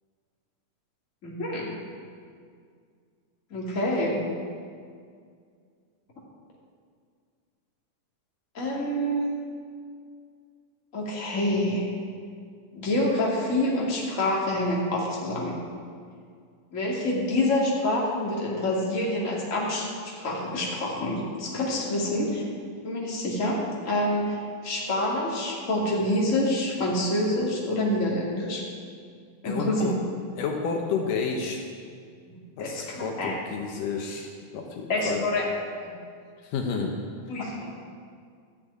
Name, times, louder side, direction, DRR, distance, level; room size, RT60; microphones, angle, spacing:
voice 1, 1.2-1.7 3.5-4.2 8.5-9.2 10.9-11.9 12.7-15.5 16.7-22.4 22.8-23.6 23.8-28.6 29.4-29.9 32.3-33.4 34.9-35.5 35.8-35.9 37.3-37.7, left 1 dB, 25° left, -4 dB, 2.6 m, -27 dB
voice 2, 29.4-30.0 30.4-31.7 32.6-35.2 36.4-37.0, left 5 dB, 75° left, 2 dB, 2.7 m, -30 dB
13.0 x 7.8 x 9.1 m, 2.1 s
omnidirectional pair, 3.9 m